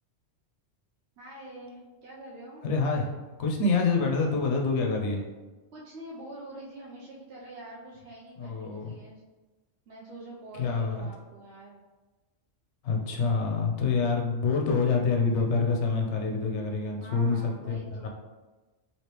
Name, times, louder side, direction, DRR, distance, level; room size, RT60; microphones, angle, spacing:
voice 1, 1.2-2.6 5.7-9.2 9.9-11.8 17.0-18.1, right 1 dB, 65° right, -5 dB, 0.8 m, -45 dB
voice 2, 2.6-5.2 8.4-8.9 10.6-11.1 12.8-18.1, left 4 dB, 70° left, 1 dB, 0.9 m, -27 dB
3.2 x 3.0 x 2.9 m, 1.2 s
omnidirectional pair, 1.3 m